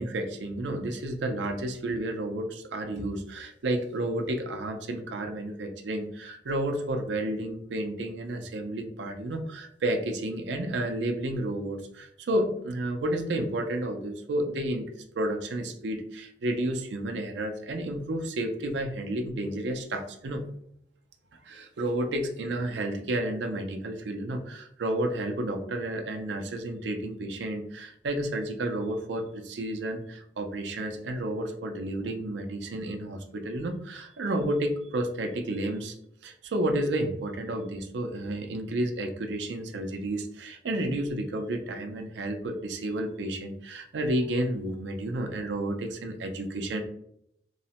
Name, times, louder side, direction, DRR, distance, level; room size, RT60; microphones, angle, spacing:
voice 1, 0.0-14.9 15.2-20.4 21.4-35.9 36.2-46.8, right 1 dB, 90° right, 5 dB, 0.4 m, -31 dB
3.1 x 2.0 x 2.8 m, 0.74 s
head